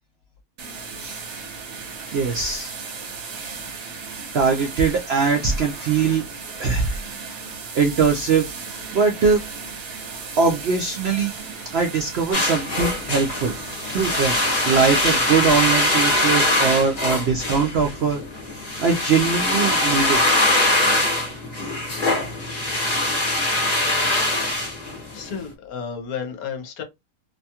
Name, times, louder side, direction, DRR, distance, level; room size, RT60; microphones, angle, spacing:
sound 1, 0.6-18.9, right 4 dB, 65° right, 1.2 m, -37 dB
voice 1, 2.1-2.7 4.3-6.3 6.6-7.0 7.7-9.4 10.4-11.3 11.7-14.4 14.7-18.2 18.8-20.2, right 5 dB, 85° right, 0.5 m, -21 dB
sound 2, 12.3-25.3, left 1 dB, 35° left, 0.7 m, -22 dB
voice 2, 25.1-26.8, left 6 dB, 70° left, 1.1 m, -32 dB
2.7 x 2.3 x 2.7 m
omnidirectional pair, 1.7 m